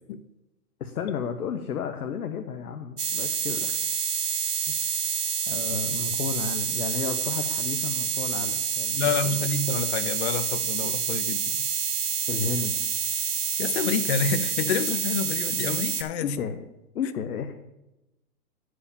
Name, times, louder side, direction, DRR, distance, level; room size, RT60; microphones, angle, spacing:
voice 1, 0.8-3.8 4.7-4.8 5.5-9.0 9.2-9.5 12.3-12.7 16.2-16.6 16.9-17.5, left 7 dB, 75° left, 6 dB, 1.2 m, -32 dB
sound 1, 3.0-16.0, right 7 dB, 90° right, 1.4 m, -28 dB
voice 2, 8.9-11.6 13.6-16.4, left 6 dB, 45° left, 12 dB, 0.7 m, -28 dB
10.0 x 5.0 x 6.9 m, 0.92 s
hypercardioid pair, 135°, 45 cm